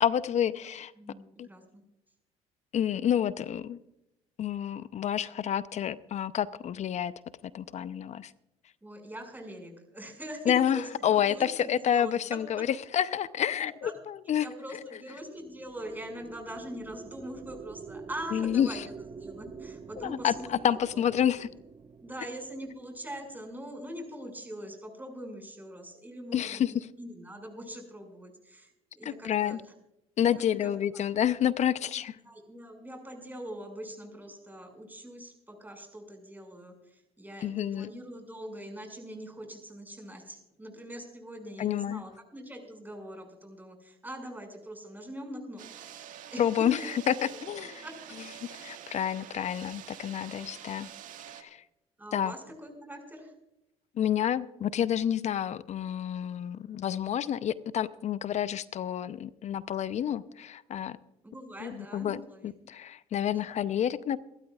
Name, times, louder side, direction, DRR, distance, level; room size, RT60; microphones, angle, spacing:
voice 1, 0.0-0.9 1.4-1.5 2.7-3.8 4.4-7.1 7.5-8.3 10.5-12.7 12.9-14.5 14.7-14.8 18.3-18.8 20.0-21.5 26.3-26.7 29.0-29.6 30.2-32.2 37.4-37.9 41.6-42.0 46.4-46.8 47.1-47.2 47.4-47.8 48.6-50.9 51.4-51.6 52.1-52.3 54.0-61.0 61.6-62.2 62.7-64.2, left 9 dB, 50° left, 16 dB, 0.7 m, -29 dB
voice 2, 1.0-1.8 8.8-12.6 13.8-13.9 14.4-18.8 19.2-20.7 20.9-21.2 22.0-29.7 30.3-31.0 32.2-46.9 47.8-48.0 52.0-53.3 61.2-62.5, equal, 10° right, 3 dB, 5.9 m, -43 dB
sound 1, 15.2-23.7, right 5 dB, 30° right, 0.9 m, -47 dB
sound 2, 45.6-51.4, right 10 dB, 60° right, 1.8 m, -46 dB
28.0 x 12.5 x 2.4 m, 0.87 s
hypercardioid pair, 70°, 15 cm